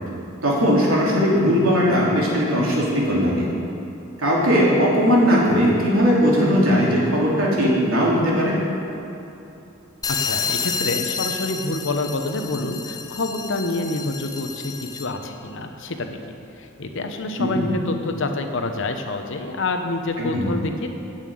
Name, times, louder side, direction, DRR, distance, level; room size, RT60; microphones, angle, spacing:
voice 1, 0.4-3.5 4.2-8.5 17.4-17.7 20.2-20.5, equal, 85° right, -5 dB, 3.0 m, -19 dB
sound 1, 10.0-15.2, left 6 dB, 20° left, 0.4 m, -29 dB
voice 2, 10.2-16.2 16.6-20.9, left 2 dB, 65° left, 5 dB, 0.9 m, -27 dB
8.3 x 7.4 x 8.5 m, 3.0 s
head